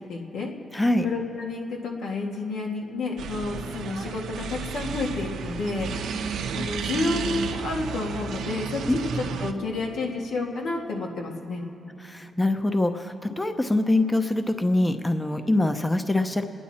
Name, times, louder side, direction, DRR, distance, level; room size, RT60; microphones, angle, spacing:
voice 1, 0.1-0.5 1.0-5.9 6.2-11.6, left 3 dB, 85° left, -1 dB, 2.0 m, -30 dB
voice 2, 0.7-1.0 8.9-9.0 12.0-16.4, left 2 dB, 15° left, 7 dB, 0.8 m, -24 dB
sound 1, 3.2-9.5, right 6 dB, 85° right, 0.7 m, -32 dB
29.0 x 10.0 x 4.3 m, 3.0 s
cardioid pair, 75°, 0 cm